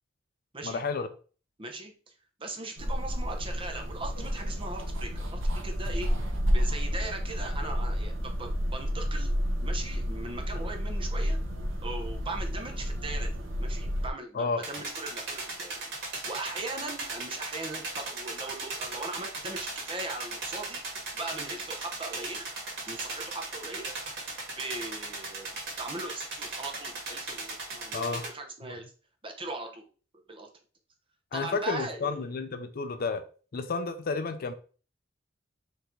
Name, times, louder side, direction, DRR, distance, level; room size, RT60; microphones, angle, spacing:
voice 1, 0.6-1.1 14.3-14.6 27.9-28.3 31.3-33.2 33.5-34.5, left 4 dB, 50° left, 0.4 m, -31 dB
voice 2, 1.6-2.1 2.4-6.1 6.5-9.3 9.6-11.4 11.8-15.7 16.0-20.8 21.1-22.5 22.9-24.0 24.6-25.5 25.8-28.9 29.2-29.9 30.3-30.5 31.3-32.3, right 2 dB, 25° right, 0.8 m, -39 dB
sound 1, 2.8-14.1, equal, 75° right, 1.0 m, -30 dB
sound 2, 14.6-28.3, right 3 dB, 60° right, 1.7 m, -38 dB
4.5 x 2.9 x 3.8 m
head